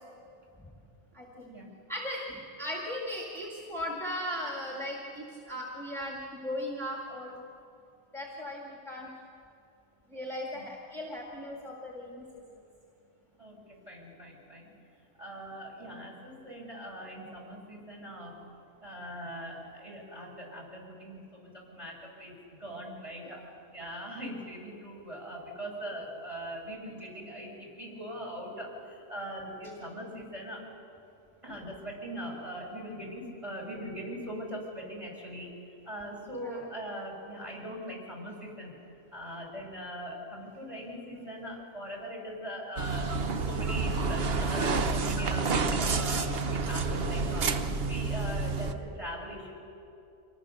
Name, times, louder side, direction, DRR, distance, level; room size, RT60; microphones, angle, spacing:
voice 1, 1.2-1.5 1.9-2.2 2.6-7.3 8.1-9.1 10.1-12.2 36.4-36.6, left 1 dB, ahead, -2 dB, 2.3 m, -37 dB
voice 2, 13.4-14.7 15.2-18.4 18.8-30.6 31.4-35.5 35.8-38.7 39.1-49.5, equal, 30° right, -2 dB, 6.3 m, -41 dB
sound 1, 42.8-48.7, right 4 dB, 60° right, 1.2 m, -29 dB
26.5 x 20.5 x 6.6 m, 2.6 s
omnidirectional pair, 1.1 m